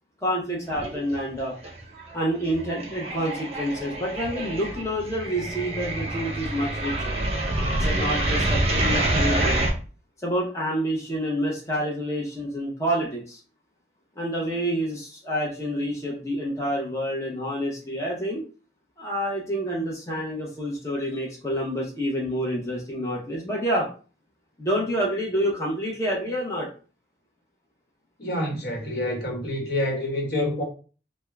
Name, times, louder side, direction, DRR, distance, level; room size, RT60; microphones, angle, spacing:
voice 1, 0.2-1.5 2.1-7.1 7.8-9.6 10.2-13.4 14.2-18.4 19.0-23.9 24.6-26.7, equal, 15° left, 0.7 m, -28 dB
sound 1, 0.7-1.4 1.6-9.7, right 1 dB, 35° right, 0.7 m, -27 dB
voice 2, 28.2-30.6, left 1 dB, 60° left, 1.1 m, -27 dB
3.4 x 2.2 x 3.3 m
head